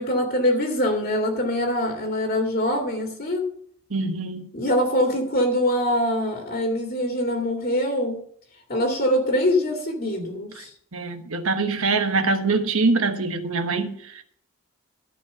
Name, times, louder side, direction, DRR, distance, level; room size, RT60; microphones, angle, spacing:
voice 1, 0.0-3.4 4.5-8.2 8.7-10.7, left 1 dB, 45° left, 2.2 m, -23 dB
voice 2, 3.9-4.5 10.9-14.2, right 3 dB, 75° right, 1.2 m, -24 dB
13.5 x 5.1 x 6.7 m
head